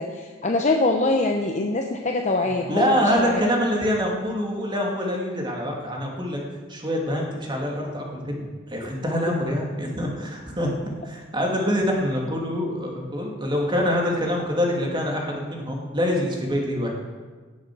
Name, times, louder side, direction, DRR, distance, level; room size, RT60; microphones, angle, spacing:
voice 1, 0.0-3.4, left 2 dB, 35° left, 2 dB, 0.8 m, -24 dB
voice 2, 2.7-6.4 6.7-10.7 11.0-16.9, equal, 20° right, -1 dB, 2.5 m, -25 dB
17.5 x 7.3 x 6.2 m, 1.4 s
head